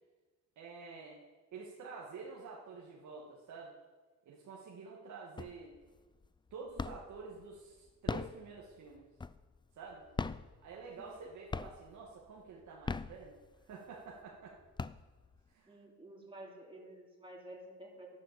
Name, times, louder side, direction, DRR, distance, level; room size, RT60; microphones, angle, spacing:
voice 1, 0.6-1.2 1.5-3.7 4.3-5.7 6.5-9.1 9.8-10.1 10.6-13.4 13.7-14.6 15.5-15.8, right 4 dB, 75° right, -3 dB, 2.2 m, -49 dB
sound 1, 5.4-5.9 6.2-7.2 7.9-9.6 10.1-11.2 11.5-12.1 12.7-13.7 14.2-14.3 14.6-15.5, left 4 dB, 15° left, 0.4 m, -39 dB
voice 2, 15.7-18.1, right 1 dB, 15° right, -2 dB, 3.6 m, -51 dB
11.0 x 11.0 x 7.0 m, 1.3 s
cardioid pair, 90°, 30 cm